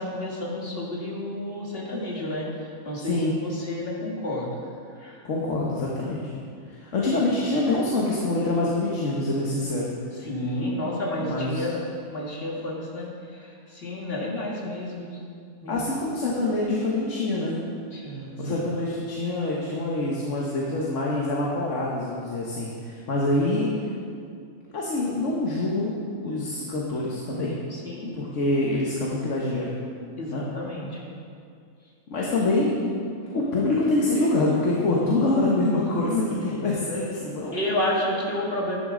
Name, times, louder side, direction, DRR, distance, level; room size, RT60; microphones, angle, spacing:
voice 1, 0.0-4.6 4.9-5.2 10.2-11.8 12.1-15.2 15.6-15.8 17.9-18.6 27.7-28.1 30.2-31.1 36.4-36.7 37.5-38.8, left 1 dB, 40° left, -4 dB, 2.0 m, -31 dB
voice 2, 3.0-3.3 5.2-6.3 6.7-9.9 11.2-11.6 15.7-17.6 18.4-23.7 24.7-25.9 26.2-27.5 28.1-29.7 30.3-30.4 32.1-32.9 33.3-37.6, left 2 dB, 60° left, -4 dB, 1.4 m, -25 dB
10.5 x 10.5 x 3.8 m, 2.3 s
omnidirectional pair, 1.5 m